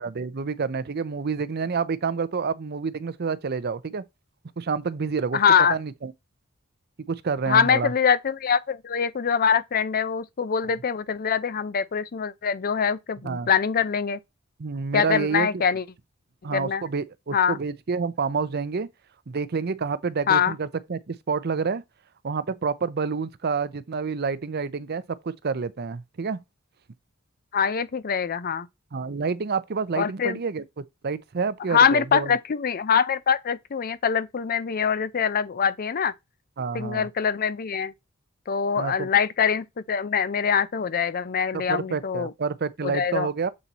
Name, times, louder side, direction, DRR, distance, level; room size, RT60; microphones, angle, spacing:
voice 1, 0.0-4.0 4.6-5.4 5.7-6.1 7.1-7.9 13.2-13.5 14.6-15.6 16.4-18.9 19.3-21.8 22.2-26.4 28.9-32.4 36.6-37.1 38.8-39.1 41.5-43.5, right 5 dB, 50° right, 0.6 m, -28 dB
voice 2, 5.3-5.7 7.5-14.2 14.9-15.8 16.5-16.8 17.3-17.6 20.3-20.5 27.5-28.7 30.0-30.4 31.7-36.1 36.7-37.9 38.5-42.3 42.8-43.3, left 7 dB, 45° left, 0.5 m, -23 dB
7.5 x 4.1 x 4.1 m
head